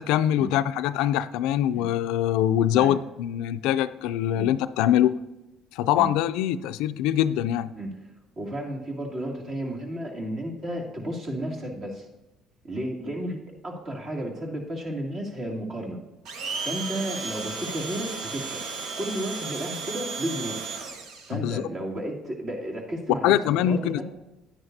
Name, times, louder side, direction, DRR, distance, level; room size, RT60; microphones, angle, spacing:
voice 1, 0.0-5.1 5.7-7.7 21.3-21.7 23.2-24.0, left 11 dB, 80° left, 12 dB, 0.4 m, -23 dB
voice 2, 8.4-12.1 12.6-16.0 16.6-18.6 19.0-20.7 21.3-23.4 23.6-24.0, right 1 dB, 45° right, -1 dB, 2.6 m, -33 dB
Domestic sounds home sounds, 16.3-21.3, right 4 dB, 75° right, 1.1 m, -34 dB
10.0 x 9.6 x 2.7 m, 0.99 s
supercardioid pair, 90°, 0 cm